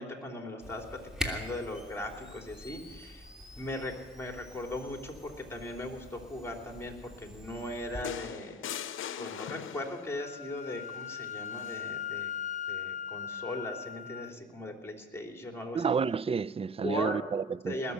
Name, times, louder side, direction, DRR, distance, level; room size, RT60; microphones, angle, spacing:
voice 1, 0.0-3.3 3.6-8.6 9.2-12.3 12.7-16.0 16.7-17.2 17.6-17.9, left 1 dB, 15° left, 3.3 m, -38 dB
Camera, 0.6-8.0, left 1 dB, 5° right, 3.0 m, -44 dB
sound 1, 8.0-10.2 11.6-11.8, left 10 dB, 75° left, 0.7 m, -40 dB
Wind instrument woodwind instrument, 10.1-14.3, left 9 dB, 35° left, 0.5 m, -38 dB
voice 2, 15.7-17.9, right 6 dB, 30° right, 0.4 m, -31 dB
20.0 x 7.0 x 9.4 m
cardioid pair, 65°, 20 cm